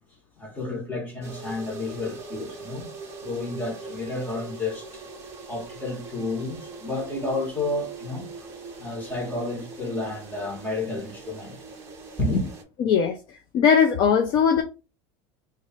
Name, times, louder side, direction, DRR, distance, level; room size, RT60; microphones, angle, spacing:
voice 1, 0.4-2.9 3.2-5.0 5.5-8.5 8.8-11.6 12.2-12.5, left 2 dB, 10° left, 1.2 m, -31 dB
sound 1, 1.2-12.6, right 3 dB, 20° right, 0.8 m, -41 dB
voice 2, 12.8-14.6, left 7 dB, 35° left, 0.4 m, -20 dB
3.1 x 2.4 x 4.2 m
cardioid pair, 175°, 14 cm